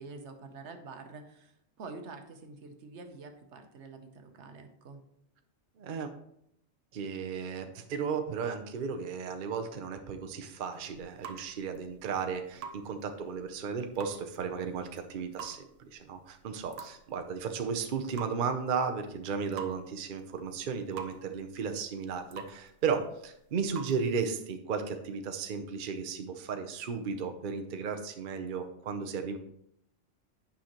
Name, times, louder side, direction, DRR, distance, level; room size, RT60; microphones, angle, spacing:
voice 1, 0.0-5.0, right 4 dB, 75° right, 6 dB, 1.1 m, -47 dB
voice 2, 5.8-6.1 6.9-29.4, right 6 dB, 50° right, 6 dB, 0.7 m, -34 dB
sound 1, 10.7-24.2, right 5 dB, 90° right, 1.0 m, -49 dB
9.0 x 5.7 x 2.9 m, 0.75 s
omnidirectional pair, 1.2 m